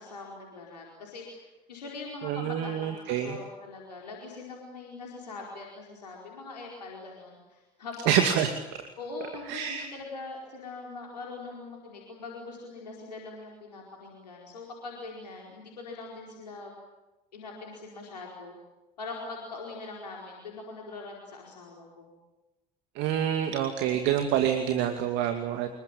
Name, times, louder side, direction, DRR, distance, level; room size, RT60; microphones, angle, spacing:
voice 1, 0.0-8.2 9.0-16.7 17.3-18.5 19.0-22.1, left 3 dB, 90° left, -1 dB, 4.7 m, -42 dB
voice 2, 2.2-3.4 8.1-8.5 9.5-9.9 23.0-25.7, right 9 dB, 65° right, 6 dB, 2.4 m, -27 dB
26.5 x 23.0 x 9.1 m, 1.0 s
hypercardioid pair, 55°, 20 cm